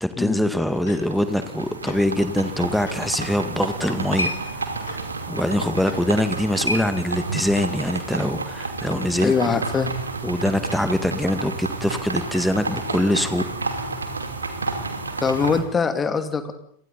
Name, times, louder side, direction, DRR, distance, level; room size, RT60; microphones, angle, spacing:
voice 1, 0.0-4.6 5.3-9.3 10.2-13.4, left 1 dB, ahead, 10 dB, 2.0 m, -23 dB
sound 1, 0.7-15.6, right 3 dB, 75° right, 2.7 m, -31 dB
Tick-tock, 0.8-1.0 1.8-2.0 2.9-3.0 3.8-4.0 4.8-5.0 5.9-6.0, left 7 dB, 60° left, 6.4 m, -40 dB
sound 2, 3.4-7.7, equal, 85° left, 3.1 m, -34 dB
voice 2, 9.2-9.9 15.2-16.5, left 5 dB, 20° left, 9 dB, 2.4 m, -22 dB
29.5 x 23.0 x 4.2 m, 0.64 s
figure-of-eight pair, 90°, 0 cm